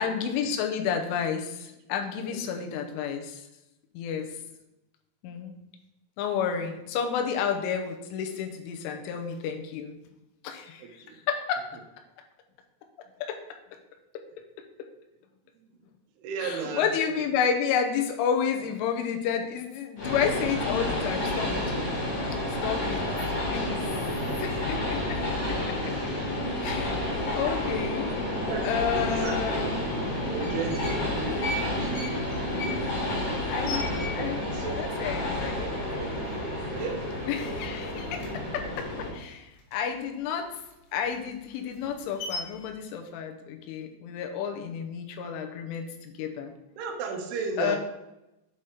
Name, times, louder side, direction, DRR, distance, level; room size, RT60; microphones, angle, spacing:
voice 1, 0.0-3.5 3.9-4.4 5.2-5.5 6.2-10.0 10.4-11.7 13.2-13.4 14.1-14.2 16.4-21.9 22.6-23.1 23.5-24.0 24.4-25.2 25.7-25.8 26.6-28.1 28.6-29.8 33.5-33.9 34.2-34.4 34.8-35.6 37.3-38.2 38.5-40.5 40.9-46.5 47.6-47.8, left 7 dB, 85° left, 4 dB, 3.2 m, -31 dB
voice 2, 2.3-2.6 4.2-4.3 10.8-11.2 15.6-15.7 16.2-16.9 22.9-23.2 28.5-29.4 30.3-32.0 34.1-34.9 35.4-36.1 36.7-37.1 46.8-47.8, right 5 dB, 75° right, 2 dB, 2.5 m, -35 dB
Train, 20.0-39.1, left 1 dB, 40° left, 3.2 m, -30 dB
sound 1, 29.2-29.3 30.2-31.0 31.3-34.6 34.9-35.0 35.2-35.8 36.2-36.3 36.6-37.4 37.7-40.1 40.4-42.7, left 2 dB, 65° left, 3.2 m, -38 dB
7.8 x 4.9 x 4.3 m, 0.93 s
omnidirectional pair, 5.6 m